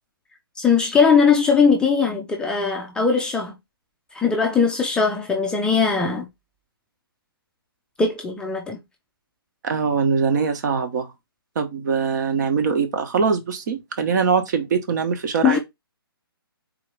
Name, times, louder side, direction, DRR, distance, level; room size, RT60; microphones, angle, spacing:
voice 1, 0.6-3.5 4.1-6.3 8.0-8.8 15.4-15.6, left 5 dB, 5° left, 0.5 m, -19 dB
voice 2, 9.6-11.1 11.5-15.6, right 5 dB, 50° right, 1.3 m, -22 dB
4.0 x 2.9 x 4.6 m
figure-of-eight pair, 135°, 13 cm